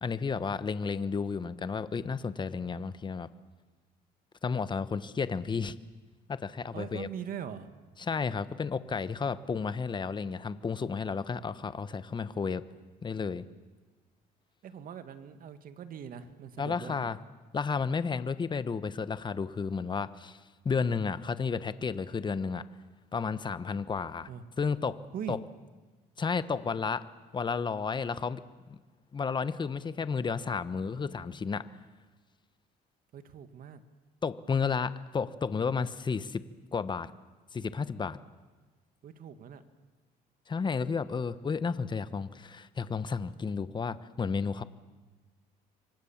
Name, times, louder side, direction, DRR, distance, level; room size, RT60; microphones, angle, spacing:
voice 1, 0.0-3.3 4.4-5.8 6.3-7.1 8.0-12.6 13.0-13.5 16.6-17.2 17.5-20.4 20.6-22.6 23.1-24.3 24.6-25.0 25.3-25.4 26.2-27.0 27.3-28.4 28.7-28.8 29.1-31.6 34.2-36.4 36.7-37.1 37.5-38.2 40.5-44.6, left 5 dB, 25° left, 14 dB, 1.1 m, -32 dB
voice 2, 6.7-7.7 14.6-17.1 24.3-24.4 25.1-25.4 33.1-33.8 39.0-39.6, right 8 dB, 55° right, 10 dB, 2.0 m, -41 dB
27.5 x 24.5 x 7.4 m, 1.3 s
cardioid pair, 110°, 17 cm